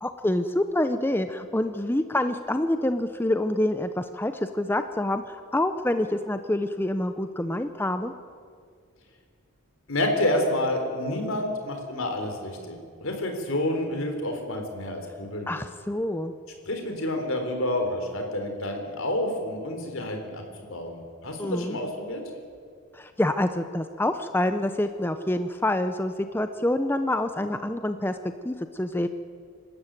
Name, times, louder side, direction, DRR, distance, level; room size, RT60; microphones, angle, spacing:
voice 1, 0.0-8.1 15.5-16.3 21.4-21.8 22.9-28.2 28.4-29.1, left 1 dB, 10° left, 9 dB, 0.6 m, -27 dB
voice 2, 9.9-15.5 16.7-20.4 20.7-22.2, left 1 dB, 75° left, 4 dB, 3.9 m, -29 dB
25.5 x 13.0 x 9.1 m, 2.1 s
head